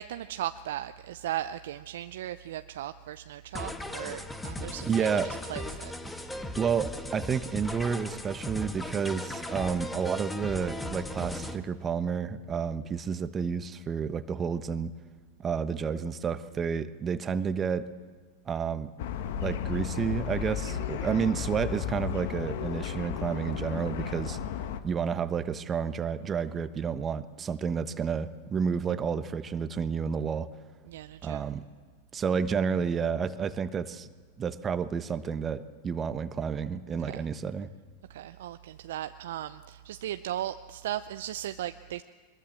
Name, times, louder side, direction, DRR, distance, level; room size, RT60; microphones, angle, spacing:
voice 1, 0.0-6.4 20.7-20.9 30.9-31.4 37.0-37.2 38.1-42.0, right 12 dB, 70° right, 10 dB, 0.6 m, -37 dB
sound 1, 3.5-11.6, left 1 dB, 10° left, 1.7 m, -37 dB
voice 2, 4.9-5.3 6.6-14.9 15.4-17.9 18.5-18.9 19.4-24.4 24.8-30.5 31.2-31.6 32.1-34.1 34.4-37.7, right 6 dB, 25° right, 11 dB, 1.1 m, -30 dB
sound 2, 19.0-24.8, left 8 dB, 65° left, 1.3 m, -34 dB
23.0 x 21.5 x 7.5 m, 1.4 s
hypercardioid pair, 95°, 0 cm